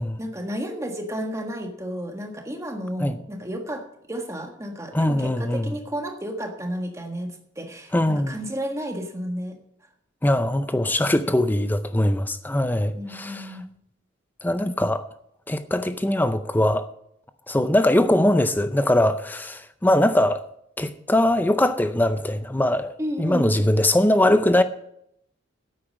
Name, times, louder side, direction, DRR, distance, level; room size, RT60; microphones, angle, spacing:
voice 1, 0.2-9.6 12.9-13.7 23.0-23.7, equal, 15° right, 1.5 m, -32 dB
voice 2, 4.9-5.7 7.9-8.4 10.2-13.5 14.4-15.0 15.5-16.9 17.5-20.4 20.8-22.9 23.2-24.6, left 1 dB, 10° left, 0.5 m, -21 dB
9.8 x 8.7 x 7.5 m
head